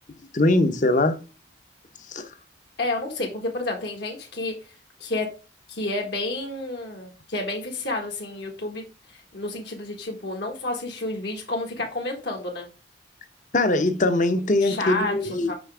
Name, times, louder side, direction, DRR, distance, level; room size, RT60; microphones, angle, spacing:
voice 1, 0.3-1.2 2.1-2.3 13.5-15.5, left 2 dB, 40° left, 0.8 m, -21 dB
voice 2, 2.8-4.6 5.0-5.3 5.7-8.8 9.1-12.7 14.5-15.5, left 2 dB, 65° left, 1.5 m, -30 dB
6.3 x 5.7 x 3.4 m
head